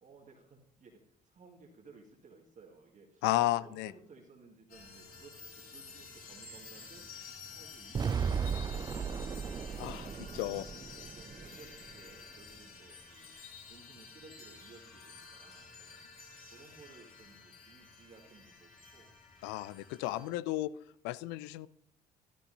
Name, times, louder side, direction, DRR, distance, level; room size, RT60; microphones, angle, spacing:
voice 1, 0.0-5.3 5.7-7.1 7.5-9.9 10.5-13.3 13.7-16.1 16.5-19.1 20.0-20.5, right 4 dB, 40° right, -1 dB, 1.8 m, -58 dB
voice 2, 3.2-3.9 9.8-10.1 10.3-10.7 19.4-20.7 21.0-21.7, left 16 dB, 60° left, 18 dB, 0.5 m, -33 dB
sound 1, 4.7-20.3, left 4 dB, 45° left, 3.6 m, -51 dB
sound 2, 7.9-12.1, right 6 dB, 20° right, 0.4 m, -36 dB
13.5 x 13.0 x 2.7 m, 0.67 s
figure-of-eight pair, 45°, 20 cm